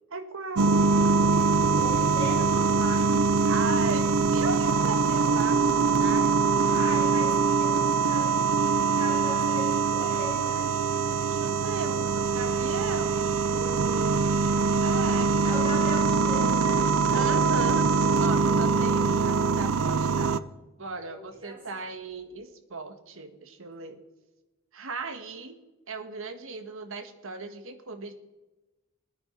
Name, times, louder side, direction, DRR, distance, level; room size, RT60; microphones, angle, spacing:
voice 1, 0.1-0.8 3.5-5.6 6.0-6.7 11.2-14.2 14.8-15.3 16.9-20.4 20.8-24.0 24.7-25.6 25.9-28.1, right 4 dB, 65° right, 9 dB, 1.5 m, -37 dB
sound 1, 0.6-20.4, right 4 dB, 80° right, 0.6 m, -23 dB
voice 2, 1.7-3.3 6.7-10.7 15.4-16.9 21.0-21.9, equal, 25° right, -4 dB, 6.5 m, -40 dB
19.0 x 9.8 x 5.6 m, 1.1 s
head